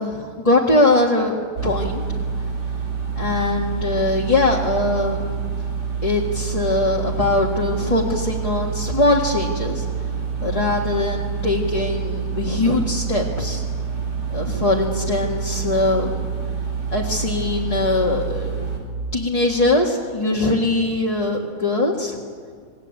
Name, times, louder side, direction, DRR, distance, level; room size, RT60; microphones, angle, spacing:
voice 1, 0.0-2.0 3.2-5.4 6.0-9.8 10.4-13.6 14.3-16.2 16.9-18.7 19.1-22.2, left 2 dB, 20° left, -3 dB, 1.8 m, -21 dB
sound 1, 1.6-18.8, right 6 dB, 65° right, 4.9 m, -27 dB
27.5 x 19.5 x 8.5 m, 2.1 s
omnidirectional pair, 2.0 m